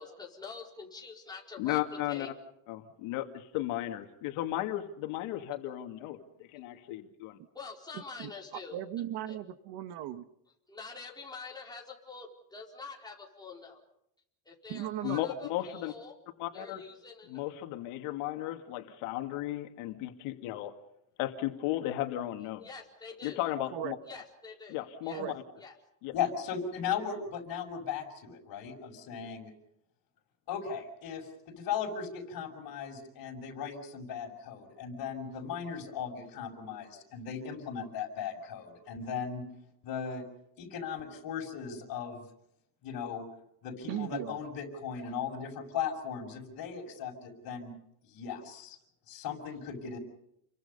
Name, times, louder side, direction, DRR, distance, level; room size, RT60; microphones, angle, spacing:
voice 1, 0.0-1.8 2.1-2.3 7.5-8.8 9.3-9.4 10.7-13.8 14.4-16.1 16.5-17.4 22.6-23.4 24.1-24.8 25.0-25.2 25.6-25.7, left 4 dB, 10° left, -2 dB, 4.3 m, -46 dB
voice 2, 1.6-2.3 2.7-7.4 15.0-15.9 16.4-16.8 17.3-20.7 21.2-22.7 23.2-24.0 24.7-25.4 26.0-26.1, left 14 dB, 80° left, 5 dB, 2.3 m, -35 dB
voice 3, 8.7-10.2 14.7-15.2 23.7-24.0 25.1-25.4 43.9-44.4, right 12 dB, 55° right, 11 dB, 1.4 m, -37 dB
voice 4, 26.1-29.5 30.5-39.4 39.8-40.2 40.6-42.2 42.8-43.3 43.6-47.7 48.1-48.8 49.1-50.0, left 7 dB, 45° left, 2 dB, 6.2 m, -37 dB
30.0 x 23.5 x 5.5 m, 0.77 s
cardioid pair, 170°, 49 cm